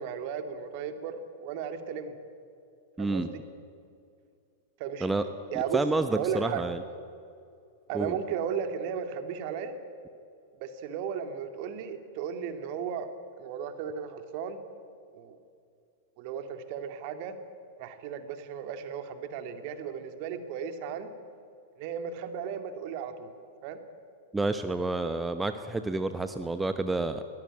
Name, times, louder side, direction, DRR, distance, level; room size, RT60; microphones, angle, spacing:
voice 1, 0.0-2.2 3.0-3.4 4.8-5.8 6.1-6.6 7.9-9.8 10.6-13.1 13.4-14.6 15.1-15.4 16.2-17.4 17.8-21.1 21.8-23.3 23.6-23.8, right 7 dB, 50° right, 8 dB, 2.3 m, -35 dB
voice 2, 3.0-3.3 5.0-5.2 5.7-6.8 7.9-8.2 24.3-27.2, right 2 dB, 10° right, 9 dB, 1.0 m, -29 dB
22.5 x 18.0 x 9.0 m, 2.5 s
figure-of-eight pair, 95°, 0 cm